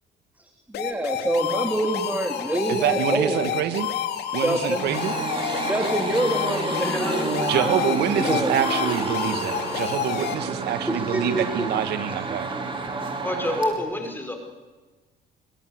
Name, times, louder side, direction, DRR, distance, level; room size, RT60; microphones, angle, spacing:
voice 1, 0.4-3.4 4.4-4.9 5.7-8.5 10.0-10.1 10.9-11.5, right 1 dB, 10° right, 4 dB, 3.2 m, -27 dB
sound 1, 0.7-10.4, left 9 dB, 75° left, 3.5 m, -29 dB
voice 2, 2.7-3.9 4.3-5.2 7.5-12.5, right 10 dB, 75° right, 10 dB, 2.3 m, -26 dB
sound 2, 4.9-13.7, right 3 dB, 30° right, 5.4 m, -29 dB
voice 3, 6.8-7.7 13.2-14.4, left 1 dB, 10° left, 6 dB, 5.6 m, -28 dB
27.0 x 25.0 x 8.3 m, 1.3 s
cardioid pair, 110°, 17 cm